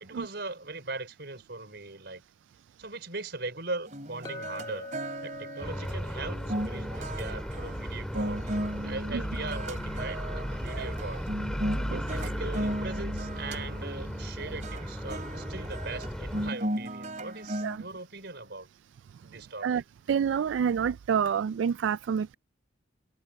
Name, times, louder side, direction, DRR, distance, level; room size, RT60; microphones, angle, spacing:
voice 1, 0.0-2.2 2.8-11.2 11.9-18.7 19.2-19.8, right 3 dB, 65° right, 5.2 m, -40 dB
sound 1, 3.9-17.8, right 1 dB, 40° right, 3.4 m, -36 dB
Chink clink, 4.2-8.4, left 2 dB, 25° left, 1.6 m, -45 dB
sound 2, 5.6-16.5, equal, 5° left, 2.3 m, -35 dB
voice 2, 20.1-22.3, right 7 dB, 85° right, 0.3 m, -28 dB
head